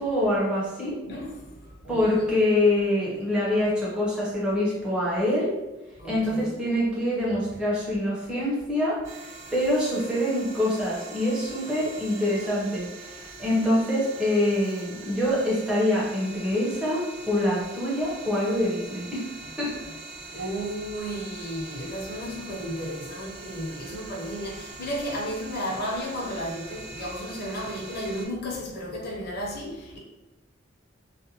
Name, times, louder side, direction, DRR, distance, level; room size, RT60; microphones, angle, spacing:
voice 1, 0.0-1.0 1.9-5.5 6.0-9.0 9.5-19.3 19.6-19.7 20.3-20.4, left 1 dB, 5° right, -7 dB, 0.8 m, -25 dB
voice 2, 1.1-2.3 6.0-6.5 19.8-19.9 20.3-30.0, equal, 55° left, -3 dB, 0.7 m, -33 dB
sound 1, 9.0-28.3, right 3 dB, 75° right, 0.6 m, -43 dB
2.5 x 2.2 x 2.8 m, 1.0 s
head